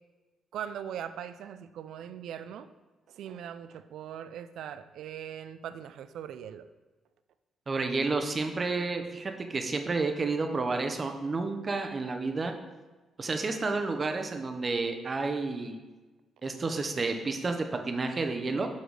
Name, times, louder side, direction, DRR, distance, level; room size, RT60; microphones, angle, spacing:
voice 1, 0.5-2.7 3.1-6.7, right 9 dB, 80° right, 12 dB, 0.3 m, -40 dB
voice 2, 7.7-12.5 13.2-15.8 16.4-18.7, right 3 dB, 30° right, 5 dB, 0.6 m, -30 dB
7.9 x 3.9 x 3.3 m, 1.2 s
cardioid pair, 130°, 0 cm